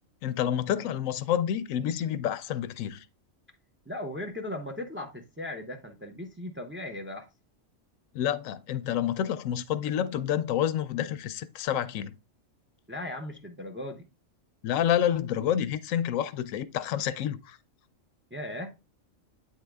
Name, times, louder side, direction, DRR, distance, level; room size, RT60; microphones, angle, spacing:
voice 1, 0.2-3.0 8.1-12.2 14.6-17.6, left 10 dB, 80° left, 1.0 m, -28 dB
voice 2, 3.9-7.3 12.9-14.1 18.3-18.7, left 1 dB, 10° right, 0.6 m, -37 dB
8.6 x 3.7 x 3.4 m
omnidirectional pair, 1.4 m